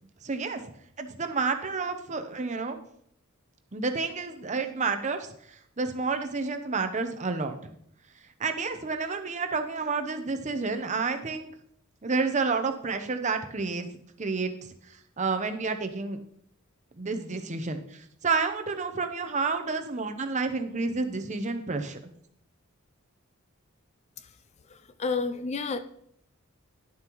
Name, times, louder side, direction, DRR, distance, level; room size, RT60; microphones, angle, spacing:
voice 1, 0.2-0.6 1.0-2.8 3.7-5.3 5.8-7.6 8.4-11.5 12.0-13.9 14.2-14.5 15.2-16.2 17.0-22.0, right 4 dB, 35° right, 7 dB, 0.7 m, -30 dB
voice 2, 25.0-25.8, left 4 dB, 30° left, 11 dB, 0.4 m, -29 dB
11.0 x 7.2 x 3.0 m, 0.69 s
head